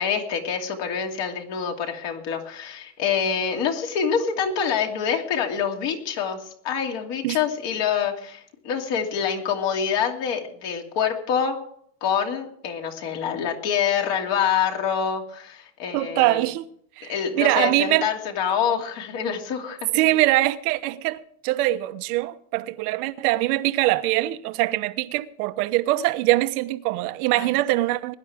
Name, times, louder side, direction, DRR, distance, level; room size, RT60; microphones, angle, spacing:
voice 1, 0.0-11.6 12.0-16.5 17.1-20.2 27.3-27.5, left 7 dB, 50° left, 2.8 m, -26 dB
voice 2, 15.9-16.7 17.0-18.1 19.9-28.1, right 17 dB, 65° right, 1.1 m, -23 dB
20.5 x 11.0 x 3.6 m
supercardioid pair, 155°, 48 cm